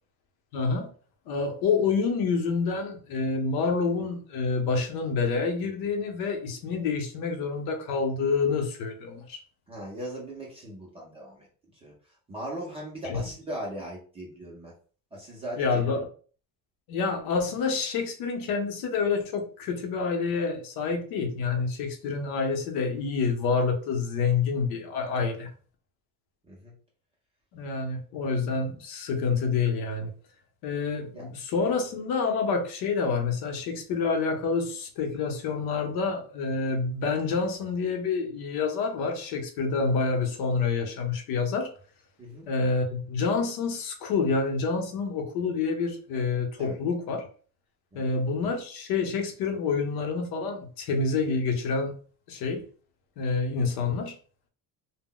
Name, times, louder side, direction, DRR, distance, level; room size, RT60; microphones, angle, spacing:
voice 1, 0.5-0.9 1.3-9.4 13.0-13.2 15.6-16.1 16.9-25.5 27.5-30.1 30.6-41.7 42.5-47.3 47.9-51.9 52.3-52.6 53.2-54.1, left 4 dB, 60° left, 0.7 m, -28 dB
voice 2, 9.7-11.5 11.8-14.7 15.1-16.0 26.5-26.7 31.1-31.3 42.2-42.5 46.6-46.8 47.9-48.1, right 1 dB, 15° right, 0.4 m, -39 dB
2.1 x 2.0 x 3.7 m
cardioid pair, 175°, 42 cm